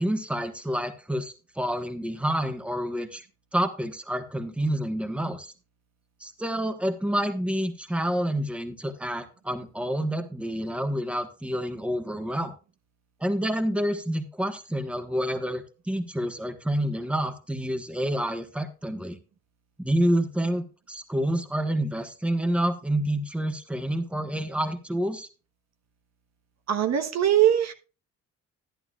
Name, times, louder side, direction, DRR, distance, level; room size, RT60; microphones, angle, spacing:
voice 1, 0.0-3.2 3.5-5.5 6.2-12.5 13.2-19.2 19.8-25.3, equal, 5° right, 8 dB, 1.3 m, -28 dB
voice 2, 26.7-27.7, right 11 dB, 60° right, 6 dB, 1.2 m, -21 dB
11.5 x 10.5 x 2.4 m, 0.33 s
cardioid pair, 90°, 30 cm